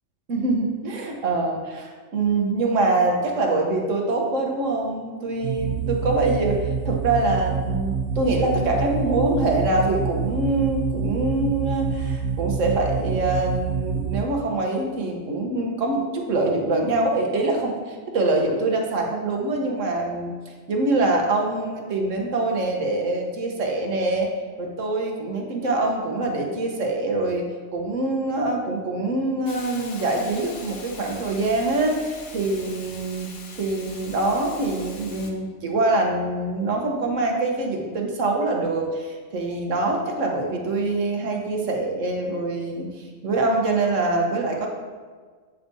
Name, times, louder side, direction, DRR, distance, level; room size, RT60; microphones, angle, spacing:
voice 1, 0.3-20.3 20.7-24.3 24.6-33.3 33.5-44.7, right 2 dB, 85° right, 1 dB, 1.5 m, -24 dB
sound 1, 5.4-14.2, right 6 dB, 70° right, 1.0 m, -27 dB
Hiss, 29.5-35.3, left 3 dB, 50° left, 0.9 m, -42 dB
8.3 x 8.1 x 2.7 m, 1.5 s
omnidirectional pair, 1.3 m